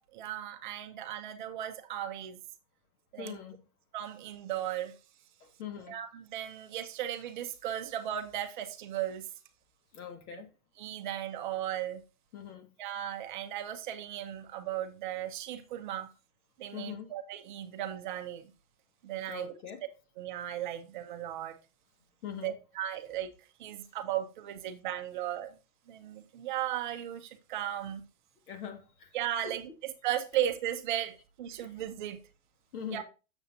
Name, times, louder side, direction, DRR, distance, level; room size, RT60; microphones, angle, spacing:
voice 1, 0.1-2.4 3.1-3.4 3.9-4.9 5.9-9.3 10.8-12.0 12.8-16.1 16.6-18.5 19.0-19.6 20.2-21.5 22.4-23.3 23.6-25.6 25.9-28.0 29.1-32.2 32.9-33.0, right 11 dB, 35° right, 0.7 m, -36 dB
voice 2, 3.2-3.6 5.4-6.0 9.9-10.5 12.3-12.7 16.7-17.1 19.3-19.8 22.2-22.6 28.5-29.1 32.7-33.0, left 8 dB, 90° left, 2.2 m, -42 dB
7.8 x 7.0 x 2.8 m
supercardioid pair, 175°, 43 cm